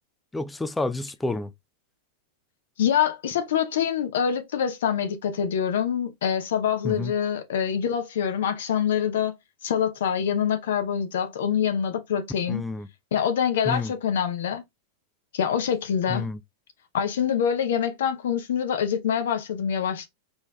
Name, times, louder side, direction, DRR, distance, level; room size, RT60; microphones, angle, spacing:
voice 1, 0.3-1.5 6.8-7.1 12.5-12.9 13.6-13.9 16.1-16.4, left 3 dB, 10° left, 0.4 m, -29 dB
voice 2, 2.8-9.3 9.6-12.6 13.1-14.6 15.3-16.3 16.9-20.1, left 8 dB, 60° left, 0.7 m, -25 dB
4.4 x 3.2 x 2.3 m
figure-of-eight pair, 90°, 0 cm